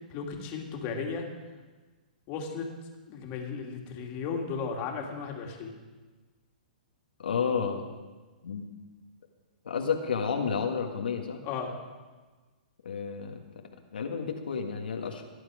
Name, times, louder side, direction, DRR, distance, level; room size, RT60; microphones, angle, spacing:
voice 1, 0.1-1.3 2.3-2.7 3.1-5.7 11.4-11.7, left 5 dB, 35° left, 2 dB, 2.5 m, -35 dB
voice 2, 7.2-7.9 8.4-8.7 9.6-11.4 12.8-13.4 13.9-15.2, left 6 dB, 85° left, 3 dB, 1.7 m, -31 dB
18.0 x 10.5 x 5.0 m, 1.3 s
hypercardioid pair, 140°, 5 cm